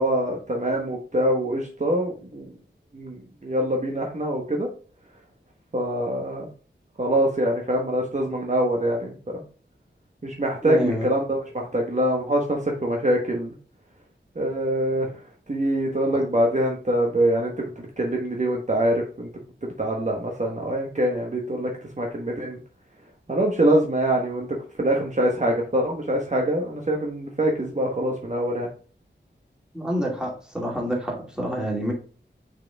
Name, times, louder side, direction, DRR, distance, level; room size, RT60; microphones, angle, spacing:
voice 1, 0.0-2.5 2.9-4.7 5.7-6.5 7.0-9.4 10.2-13.5 14.3-15.1 15.5-19.3 19.6-21.7 22.0-22.6 23.3-28.7, right 1 dB, 40° right, 0 dB, 1.2 m, -24 dB
voice 2, 10.6-11.1 16.1-16.2 29.7-31.9, equal, 5° right, -2 dB, 2.5 m, -28 dB
6.1 x 4.4 x 3.5 m, 0.40 s
wide cardioid pair, 75°, 19 cm